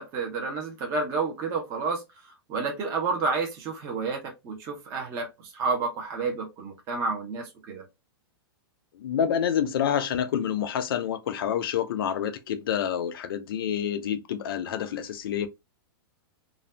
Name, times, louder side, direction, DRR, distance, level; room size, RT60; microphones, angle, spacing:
voice 1, 0.0-2.0 2.5-7.8, right 4 dB, 20° right, 0.6 m, -30 dB
voice 2, 9.0-15.5, left 9 dB, 65° left, 0.5 m, -28 dB
2.5 x 2.2 x 3.2 m
supercardioid pair, 170°, 13 cm